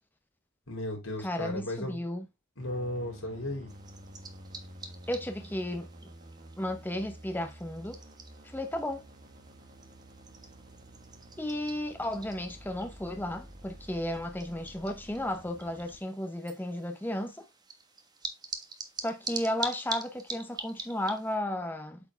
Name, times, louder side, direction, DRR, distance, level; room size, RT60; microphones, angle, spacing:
voice 1, 0.7-2.0 2.6-3.7, left 1 dB, 90° left, 3.7 m, -35 dB
voice 2, 1.2-2.3 5.1-5.9 6.6-8.0 8.4-9.0 11.4-17.4 19.0-22.0, left 1 dB, 10° left, 0.8 m, -34 dB
sound 1, 2.6-16.0, right 1 dB, 40° right, 1.4 m, -50 dB
sound 2, 3.7-21.4, right 3 dB, 20° right, 1.2 m, -45 dB
8.3 x 4.5 x 3.3 m
head